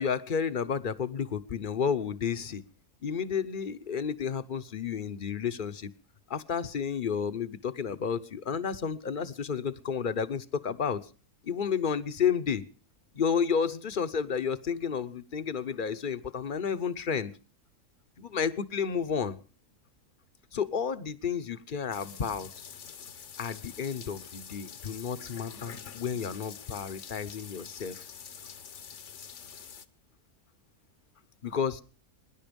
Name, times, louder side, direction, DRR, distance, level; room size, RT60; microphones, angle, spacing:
voice 1, 0.0-2.6 3.0-5.9 6.3-11.0 11.4-12.6 13.1-17.3 18.2-19.3 20.5-22.7 23.4-28.1 31.4-31.8, left 6 dB, 40° left, 12 dB, 0.9 m, -31 dB
sound 1, 21.9-29.9, left 7 dB, 60° left, 1.2 m, -46 dB
24.0 x 11.0 x 5.2 m, 0.37 s
omnidirectional pair, 1.5 m